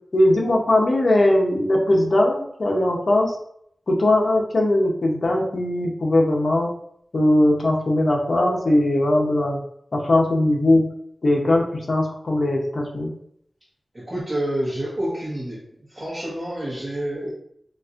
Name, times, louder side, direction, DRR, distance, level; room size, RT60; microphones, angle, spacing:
voice 1, 0.1-3.4 3.9-6.7 7.1-9.6 9.9-10.8 11.2-13.1, left 1 dB, 60° left, -1 dB, 0.8 m, -19 dB
voice 2, 13.9-15.6 15.9-17.3, right 1 dB, 30° right, -9 dB, 1.0 m, -28 dB
4.0 x 2.5 x 2.5 m, 0.68 s
wide cardioid pair, 95°, 0 cm